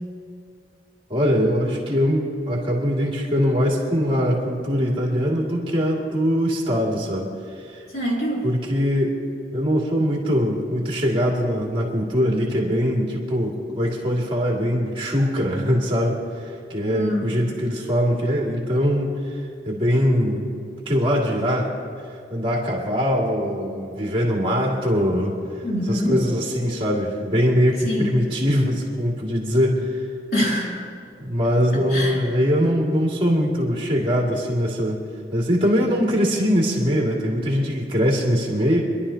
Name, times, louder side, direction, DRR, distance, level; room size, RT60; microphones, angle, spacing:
voice 1, 1.1-7.8 8.4-9.2 9.5-20.5 20.9-21.7 22.3-30.0 31.2-35.0 35.3-38.8, equal, 30° right, -2 dB, 2.2 m, -22 dB
voice 2, 7.9-8.5 16.9-17.3 25.6-26.2 27.8-28.2 30.3-30.9 31.7-32.2, equal, 60° left, -5 dB, 3.4 m, -25 dB
26.5 x 11.5 x 2.8 m, 2.4 s
head